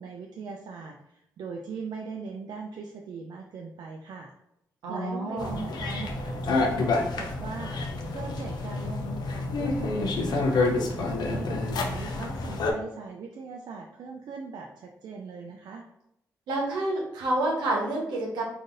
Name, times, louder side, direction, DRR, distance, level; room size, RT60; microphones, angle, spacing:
voice 1, 0.0-4.3 4.9-10.7 10.9-15.8, right 5 dB, 65° right, 1 dB, 0.4 m, -40 dB
voice 2, 4.8-5.6 16.5-18.4, right 1 dB, 80° right, -2 dB, 0.9 m, -28 dB
sound 1, 5.4-12.7, left 3 dB, 70° left, 0.5 m, -28 dB
3.7 x 2.6 x 2.5 m, 0.80 s
hypercardioid pair, 40°, 7 cm